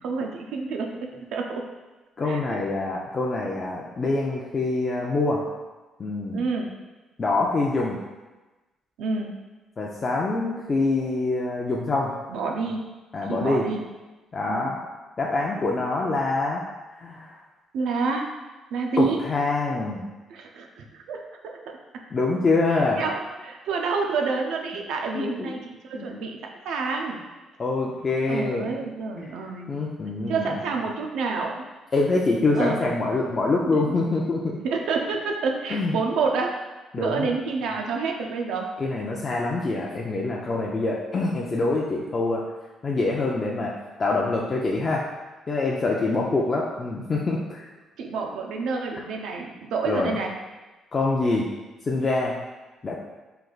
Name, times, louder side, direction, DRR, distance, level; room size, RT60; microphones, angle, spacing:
voice 1, 0.0-1.6 2.2-2.6 6.3-6.7 9.0-9.3 12.3-12.8 13.3-13.8 14.5-14.7 17.7-18.3 18.7-19.2 20.3-21.5 23.0-26.4 26.6-27.2 28.3-29.8 30.3-31.7 32.5-32.9 33.8-34.0 34.6-36.6 37.0-38.7 48.0-50.3, right 4 dB, 80° right, 2 dB, 0.4 m, -28 dB
voice 2, 2.2-5.4 6.0-6.4 7.2-8.0 9.8-12.1 13.1-13.6 14.3-14.8 15.2-16.6 17.0-17.4 19.0-20.0 22.1-23.0 25.1-25.5 25.9-26.1 27.6-28.7 29.7-30.5 31.9-34.6 35.7-35.9 36.9-37.3 38.8-42.4 42.8-43.7 44.0-45.0 45.5-47.7 49.9-50.2 50.9-51.5 51.8-52.4 52.8-53.0, left 3 dB, 40° left, -2 dB, 0.4 m, -25 dB
3.2 x 2.3 x 3.8 m, 1.2 s
supercardioid pair, 75°, 0 cm